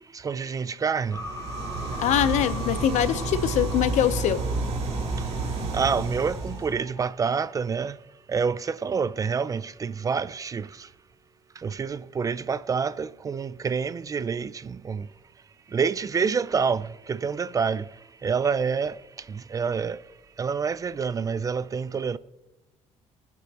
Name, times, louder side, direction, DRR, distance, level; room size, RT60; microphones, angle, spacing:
voice 1, 0.1-1.2 5.7-8.0 8.3-10.9 11.6-15.1 15.7-17.9 18.2-19.0 19.3-20.0 20.4-22.2, right 5 dB, 30° right, 0.4 m, -27 dB
sound 1, 1.1-7.6, left 1 dB, 20° left, 2.3 m, -40 dB
sound 2, 1.1-6.8, right 3 dB, 60° right, 2.8 m, -30 dB
voice 2, 2.0-4.4, left 10 dB, 80° left, 0.9 m, -23 dB
24.5 x 8.4 x 3.0 m
cardioid pair, 130°, 12 cm